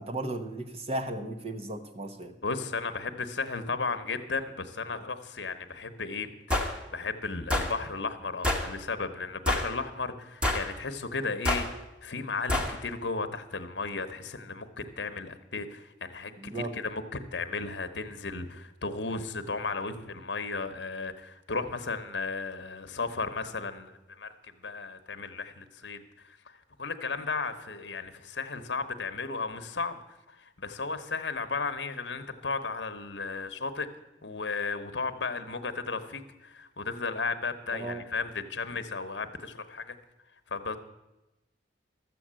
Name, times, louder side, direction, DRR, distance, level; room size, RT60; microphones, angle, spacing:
voice 1, 0.0-2.3 16.4-16.7 37.7-38.0, right 2 dB, 35° right, 7 dB, 1.0 m, -35 dB
voice 2, 2.4-11.7 12.0-24.3 24.6-30.0 30.3-33.9 34.2-40.0 40.5-40.8, left 4 dB, 70° left, 9 dB, 1.0 m, -35 dB
sound 1, 6.5-6.7 7.5-7.7 8.4-8.7 9.5-9.7 10.4-10.7 11.4-11.7 12.5-12.7, left 1 dB, 5° right, 1.3 m, -27 dB
12.5 x 7.8 x 7.5 m, 0.99 s
head